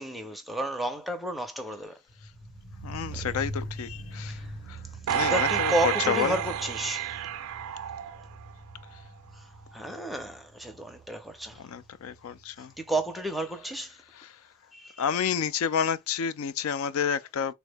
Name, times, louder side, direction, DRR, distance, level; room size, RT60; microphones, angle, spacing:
voice 1, 0.0-2.0 3.1-3.3 4.3-4.5 5.3-7.1 9.4-9.5 9.7-11.6 12.8-14.0 14.7-15.0, right 1 dB, ahead, 0.5 m, -32 dB
sound 1, 2.1-13.1 13.4-13.5, right 1 dB, 55° left, 1.0 m, -42 dB
voice 2, 2.8-4.8 5.1-6.4 11.6-12.7 14.2-14.4 15.0-17.5, left 7 dB, 80° left, 0.3 m, -30 dB
sound 2, 5.1-8.5 9.0-9.1, right 10 dB, 85° right, 0.4 m, -30 dB
3.5 x 2.1 x 3.3 m
head